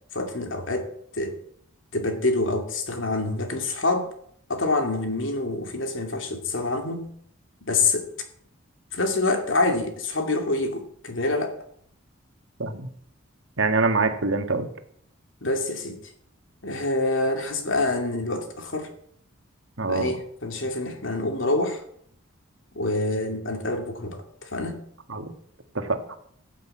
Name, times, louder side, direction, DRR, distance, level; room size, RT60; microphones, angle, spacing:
voice 1, 0.1-1.4 1.9-4.1 4.5-7.1 7.6-8.1 8.9-11.6 15.4-16.0 16.6-18.9 19.9-21.8 22.7-24.8, left 2 dB, 65° left, 2.6 m, -26 dB
voice 2, 13.6-14.7 19.8-20.1 25.1-25.3 25.8-26.0, right 3 dB, 70° right, 1.8 m, -24 dB
14.5 x 8.4 x 8.6 m
head